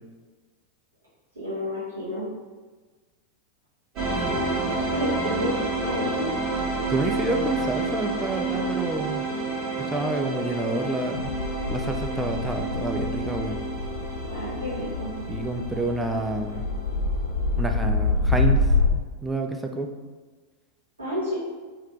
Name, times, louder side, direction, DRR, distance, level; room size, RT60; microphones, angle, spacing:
voice 1, 1.3-2.3 4.8-5.5 5.8-6.3 14.3-15.1 21.0-21.4, left 1 dB, 80° right, -9 dB, 1.1 m, -30 dB
sound 1, 4.0-16.9, right 3 dB, 40° right, 1.1 m, -30 dB
voice 2, 6.9-9.3 9.8-11.4 11.7-13.6 15.3-16.6 17.6-19.9, right 2 dB, 10° right, 4 dB, 0.3 m, -29 dB
sound 2, 11.2-18.9, left 3 dB, 70° left, 0.3 m, -27 dB
3.2 x 2.3 x 3.0 m, 1.4 s
figure-of-eight pair, 90°, 0 cm